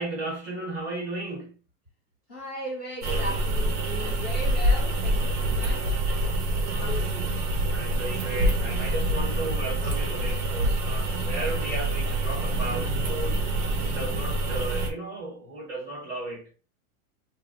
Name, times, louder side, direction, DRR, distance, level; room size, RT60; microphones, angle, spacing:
voice 1, 0.0-1.5 7.7-13.4 13.8-16.5, right 2 dB, 30° right, 1.7 m, -35 dB
voice 2, 2.3-6.0 6.7-7.3, equal, 15° left, 0.4 m, -37 dB
sound 1, 3.0-14.9, right 1 dB, 90° right, 1.2 m, -26 dB
4.7 x 2.3 x 2.7 m
supercardioid pair, 170°, 44 cm